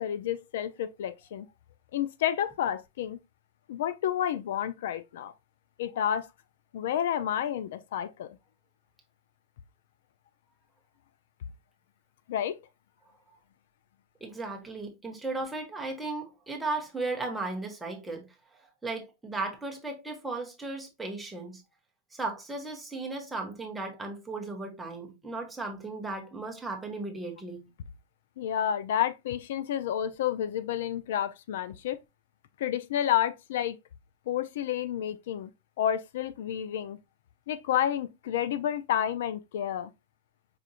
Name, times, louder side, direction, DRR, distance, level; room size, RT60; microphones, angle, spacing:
voice 1, 0.0-1.5 1.9-3.2 3.7-5.3 5.8-6.3 6.7-8.4 12.3-12.6 28.4-32.0 32.6-33.8 34.3-35.5 35.8-37.0 37.5-39.9, left 10 dB, 65° left, 0.3 m, -30 dB
voice 2, 14.2-18.3 18.8-21.6 22.1-27.7, right 3 dB, 5° right, 0.7 m, -36 dB
4.8 x 2.5 x 2.7 m
supercardioid pair, 170°, 0 cm